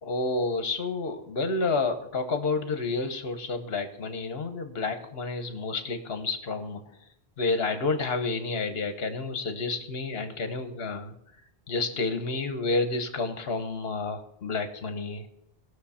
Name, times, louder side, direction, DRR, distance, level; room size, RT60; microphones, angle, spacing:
voice 1, 0.0-6.8 7.4-11.1 11.7-15.2, left 3 dB, 65° left, 8 dB, 1.3 m, -30 dB
18.0 x 6.6 x 4.3 m, 0.74 s
omnidirectional pair, 1.1 m